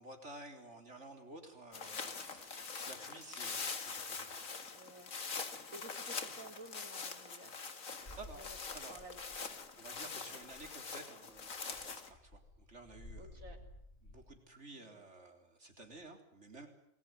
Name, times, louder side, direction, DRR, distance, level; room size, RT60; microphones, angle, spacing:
voice 1, 0.0-4.6 8.1-9.0 9.8-13.4 14.0-16.7, right 2 dB, 55° right, 5 dB, 4.3 m, -53 dB
sound 1, 1.7-12.1, left 5 dB, 80° left, 2.4 m, -44 dB
voice 2, 4.7-5.2 5.7-7.5 7.9-8.6 8.9-9.5 13.2-13.6 14.7-15.0, right 2 dB, 80° right, 3 dB, 4.6 m, -54 dB
sound 2, 8.0-9.7 9.9-10.1 10.3-10.8 11.3-14.3, left 1 dB, 55° left, 7.6 m, -55 dB
27.5 x 20.5 x 9.5 m, 0.77 s
omnidirectional pair, 1.4 m